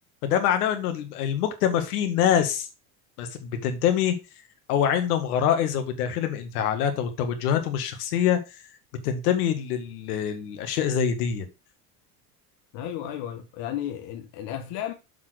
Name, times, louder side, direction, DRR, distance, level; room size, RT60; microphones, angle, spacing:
voice 1, 0.2-2.7 3.2-4.1 4.7-8.6 9.0-11.5, left 9 dB, 90° left, 1.8 m, -25 dB
voice 2, 12.7-14.9, left 11 dB, 70° left, 1.4 m, -33 dB
7.2 x 4.0 x 6.4 m
supercardioid pair, 100°, 44 cm